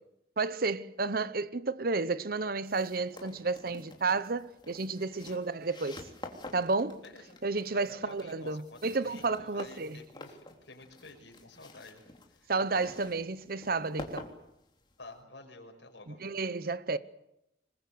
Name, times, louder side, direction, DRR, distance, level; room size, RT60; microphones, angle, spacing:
voice 1, 0.4-6.0 6.5-7.0 7.4-10.0 12.5-14.3 16.1-17.0, right 3 dB, 55° right, 0.9 m, -31 dB
sound 1, 2.6-15.2, left 2 dB, 25° left, 3.4 m, -49 dB
voice 2, 7.0-7.4 7.7-12.0 12.3-12.5 15.0-16.2, left 2 dB, 80° left, 5.9 m, -51 dB
26.5 x 21.5 x 8.1 m
head